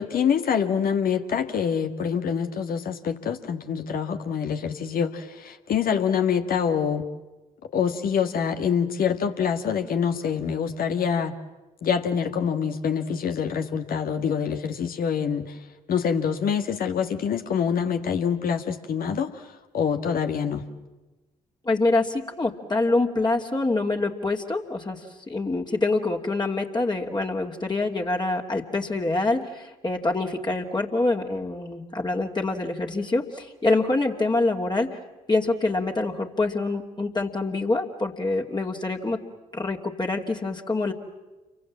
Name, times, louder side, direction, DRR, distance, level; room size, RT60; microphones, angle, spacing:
voice 1, 0.0-7.1 7.7-11.3 11.8-15.6 15.9-19.5 19.7-20.6, left 7 dB, 55° left, 7 dB, 1.9 m, -25 dB
voice 2, 21.6-35.0 35.3-39.2 39.5-40.9, left 2 dB, 25° left, 1 dB, 2.7 m, -25 dB
29.0 x 24.0 x 7.5 m, 1.1 s
hypercardioid pair, 45°, 17 cm